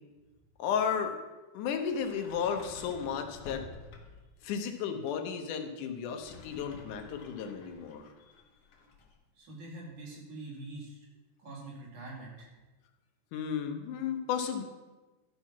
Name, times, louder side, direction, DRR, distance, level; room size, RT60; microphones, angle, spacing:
voice 1, 0.6-1.1 1.5-3.6 4.4-8.0 13.3-14.6, left 7 dB, 90° left, 6 dB, 2.4 m, -33 dB
Sliding door, 1.8-4.3 6.0-9.2, left 3 dB, 60° left, 2.0 m, -51 dB
voice 2, 9.4-11.1 11.4-12.5, right 2 dB, 80° right, -3 dB, 3.9 m, -44 dB
12.0 x 4.5 x 5.9 m, 1.2 s
omnidirectional pair, 3.5 m